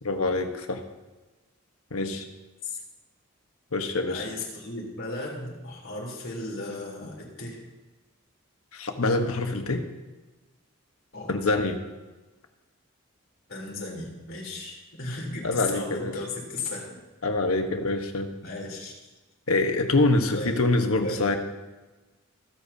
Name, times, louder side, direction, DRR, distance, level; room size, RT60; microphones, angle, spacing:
voice 1, 0.0-0.8 1.9-2.2 3.7-4.3 8.7-9.8 11.3-11.8 15.4-16.2 17.2-18.3 19.5-21.4, left 2 dB, 85° left, 5 dB, 1.2 m, -25 dB
voice 2, 4.1-7.6 11.1-11.3 13.5-17.0 18.4-19.0 20.3-20.6 21.0-21.2, left 2 dB, 65° left, -3 dB, 3.6 m, -35 dB
25.0 x 8.4 x 2.8 m, 1.2 s
head